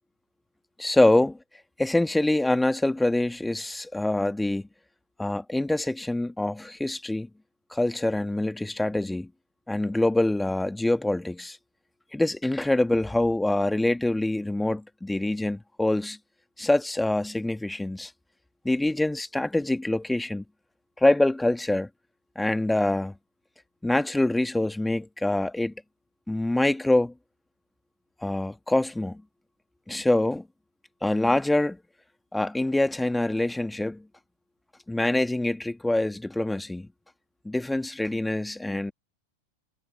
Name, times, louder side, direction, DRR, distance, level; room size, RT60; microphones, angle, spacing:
voice 1, 0.8-1.3 1.8-4.7 5.2-7.3 7.7-9.3 9.7-11.6 12.1-16.2 16.6-18.1 18.6-20.4 21.0-21.9 22.4-23.2 23.8-25.7 26.3-27.1 28.2-29.2 29.9-30.5 31.0-31.8 32.3-34.1 34.9-36.9 37.4-38.9, left 1 dB, 5° left, 2.1 m, -25 dB
figure-of-eight pair, 90°, 0 cm